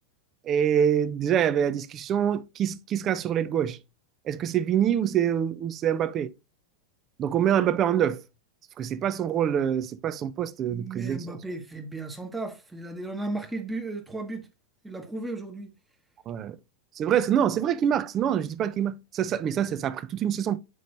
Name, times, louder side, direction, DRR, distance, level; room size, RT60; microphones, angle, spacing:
voice 1, 0.4-3.8 4.3-6.3 7.2-8.2 8.8-11.4 16.3-16.6 17.0-20.6, right 9 dB, 30° right, 0.5 m, -25 dB
voice 2, 10.7-14.5 14.8-15.7, right 2 dB, 5° right, 1.1 m, -35 dB
7.7 x 5.1 x 2.6 m
figure-of-eight pair, 90°, 0 cm